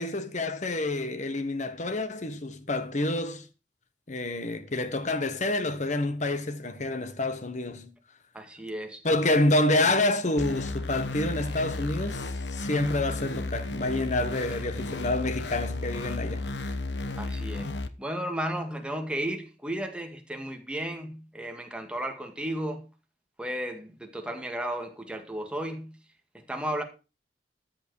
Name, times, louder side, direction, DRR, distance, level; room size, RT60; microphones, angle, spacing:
voice 1, 0.0-3.4 4.1-7.9 9.0-16.5 17.6-17.7, left 2 dB, 45° left, 1.4 m, -28 dB
voice 2, 8.3-9.0 14.6-14.7 17.1-17.7 18.0-22.8 23.4-25.9 26.5-26.8, right 1 dB, 5° right, 2.0 m, -34 dB
sound 1, 10.4-17.9, left 2 dB, 80° left, 1.1 m, -33 dB
14.0 x 7.9 x 4.9 m
head